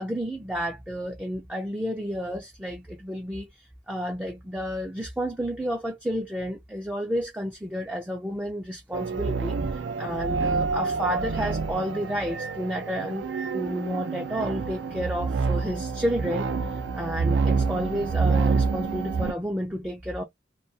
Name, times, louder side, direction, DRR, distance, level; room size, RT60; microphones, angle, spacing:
voice 1, 0.0-3.5 3.9-13.3 13.5-16.5 16.9-20.2, equal, 5° right, 0.3 m, -31 dB
sound 1, 8.9-19.3, right 4 dB, 75° right, 0.4 m, -27 dB
2.2 x 2.2 x 2.6 m
head